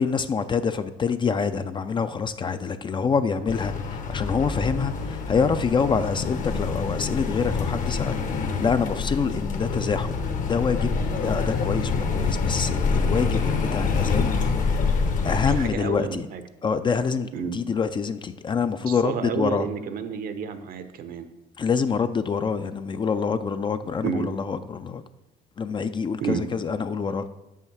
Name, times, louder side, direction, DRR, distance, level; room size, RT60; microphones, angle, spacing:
voice 1, 0.0-14.6 15.2-16.3 16.6-19.7 21.6-25.0 25.6-27.3, left 5 dB, 30° left, 11 dB, 0.4 m, -26 dB
sound 1, 3.5-15.7, left 4 dB, 50° left, 0.9 m, -26 dB
voice 2, 15.4-16.4 17.3-17.6 18.9-21.3 24.0-24.3 26.2-26.4, right 6 dB, 60° right, 9 dB, 0.7 m, -30 dB
6.3 x 5.6 x 6.1 m, 0.99 s
cardioid pair, 110°, 17 cm